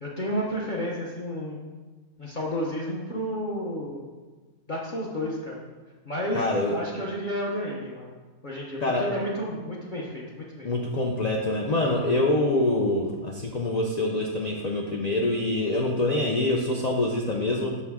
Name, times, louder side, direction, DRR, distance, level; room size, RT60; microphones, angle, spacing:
voice 1, 0.0-1.6 2.2-4.0 4.7-5.7 6.0-8.1 8.4-10.7, equal, 45° left, -4 dB, 0.8 m, -31 dB
voice 2, 6.3-6.8 8.8-9.1 10.6-17.8, left 2 dB, 75° left, 0 dB, 0.3 m, -25 dB
6.3 x 4.6 x 3.5 m, 1.3 s
omnidirectional pair, 1.4 m